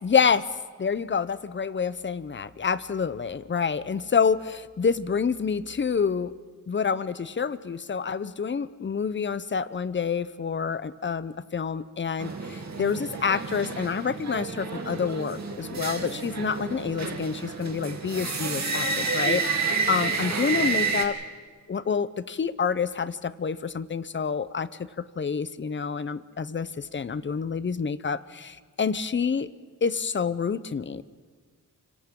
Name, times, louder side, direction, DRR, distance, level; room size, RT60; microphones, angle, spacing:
voice 1, 0.0-0.5 0.8-6.3 6.7-21.2 21.7-24.7 25.0-29.5 29.8-31.0, left 6 dB, 35° left, 15 dB, 0.7 m, -28 dB
sound 1, 12.2-21.1, right 4 dB, 55° right, 2.8 m, -30 dB
29.5 x 26.0 x 3.8 m, 1.5 s
wide cardioid pair, 95°, 34 cm